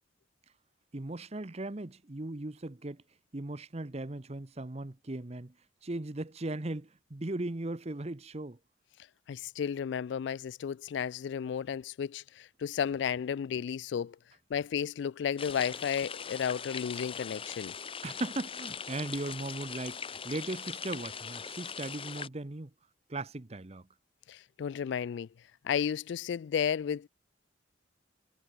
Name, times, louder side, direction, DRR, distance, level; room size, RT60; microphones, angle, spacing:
voice 1, 0.9-3.0 3.3-5.5 5.8-8.6 18.0-22.7 23.1-23.9, right 2 dB, 35° right, 0.9 m, -38 dB
voice 2, 9.3-14.2 14.5-17.7 24.3-25.3 25.6-27.1, left 7 dB, 65° left, 0.3 m, -33 dB
sound 1, 15.4-22.3, left 6 dB, 30° left, 1.1 m, -41 dB
head